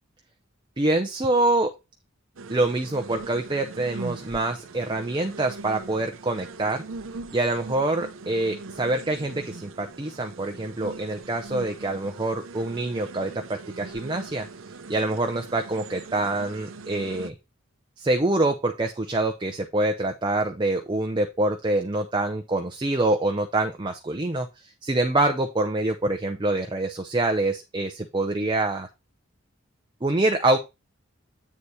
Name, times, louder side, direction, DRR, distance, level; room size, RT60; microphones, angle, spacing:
voice 1, 0.8-1.7 2.5-6.8 7.3-14.5 14.9-17.3 18.0-24.5 24.8-28.9 30.0-30.6, right 2 dB, 25° right, 4 dB, 0.6 m, -25 dB
sound 1, 2.4-17.3, right 3 dB, 80° right, 0.7 m, -41 dB
8.4 x 4.2 x 4.7 m, 0.25 s
head